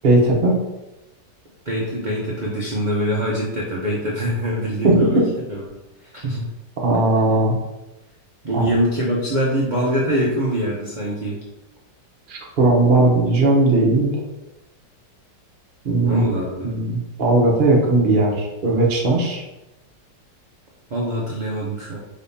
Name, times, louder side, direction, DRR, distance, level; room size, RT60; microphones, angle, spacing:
voice 1, 0.0-0.6 6.8-7.6 8.5-8.7 12.3-14.1 15.8-16.2 16.6-19.4, right 2 dB, 40° right, -1 dB, 0.8 m, -18 dB
voice 2, 1.7-5.2 5.5-5.6 6.2-6.5 8.4-11.4 16.1-16.7 20.9-22.0, equal, 65° right, -4 dB, 0.4 m, -23 dB
5.1 x 3.5 x 2.7 m, 0.97 s
omnidirectional pair, 2.0 m